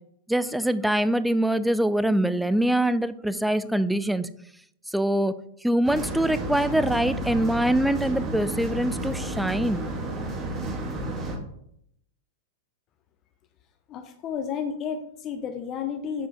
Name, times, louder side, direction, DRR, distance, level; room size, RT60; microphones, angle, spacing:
voice 1, 0.3-4.3 4.9-5.4 5.6-9.9, right 1 dB, ahead, 14 dB, 0.4 m, -24 dB
sound 1, 5.8-11.4, right 1 dB, 30° right, 1.5 m, -31 dB
voice 2, 13.9-16.3, left 7 dB, 35° left, 6 dB, 0.7 m, -32 dB
7.3 x 4.8 x 4.1 m, 0.73 s
hypercardioid pair, 110°, 0 cm